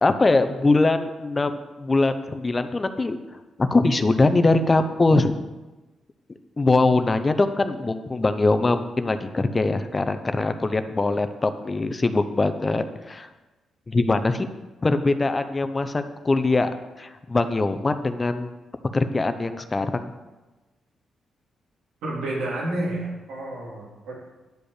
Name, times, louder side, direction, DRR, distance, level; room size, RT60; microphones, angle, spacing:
voice 1, 0.0-3.2 3.6-5.4 6.6-13.3 13.9-14.5 14.8-16.7 17.0-18.5 18.9-20.1, left 3 dB, 25° left, 10 dB, 0.7 m, -22 dB
voice 2, 22.0-24.2, right 1 dB, 90° right, -5 dB, 3.6 m, -30 dB
10.5 x 5.1 x 6.6 m, 1.1 s
cardioid pair, 80°, 0 cm